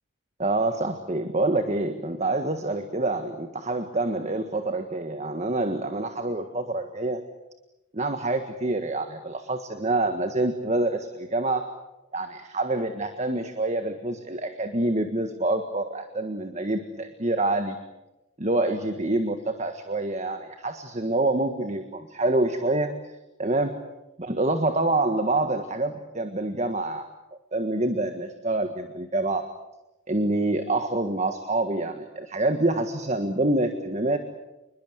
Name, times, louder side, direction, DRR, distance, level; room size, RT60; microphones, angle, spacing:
voice 1, 0.4-7.2 7.9-11.7 12.1-17.7 18.4-22.9 23.4-23.7 24.2-27.0 27.5-29.4 30.1-34.2, right 2 dB, 30° right, 7 dB, 1.6 m, -26 dB
29.0 x 22.0 x 8.1 m, 0.98 s
head